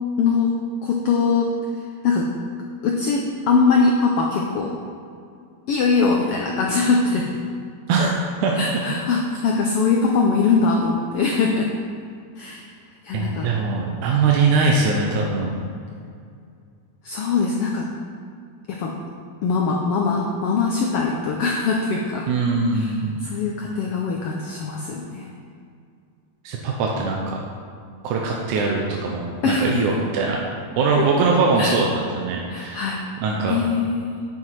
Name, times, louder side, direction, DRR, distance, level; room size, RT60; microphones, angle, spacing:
voice 1, 0.2-0.5 0.8-1.5 2.0-2.3 2.8-4.8 5.7-7.4 8.6-11.7 12.4-12.6 13.0-13.5 17.0-17.9 18.7-19.0 19.4-22.3 22.7-22.9 23.2-25.3 29.4-29.9 31.0-31.1 31.6-31.7 32.5-33.0 33.5-34.1, left 4 dB, 90° left, 0 dB, 1.3 m, -22 dB
voice 2, 13.1-15.6 22.3-23.2 26.4-27.4 28.0-30.4 30.8-32.9 33.2-33.6, right 4 dB, 90° right, -1 dB, 2.3 m, -21 dB
9.7 x 7.5 x 4.6 m, 2.3 s
omnidirectional pair, 3.5 m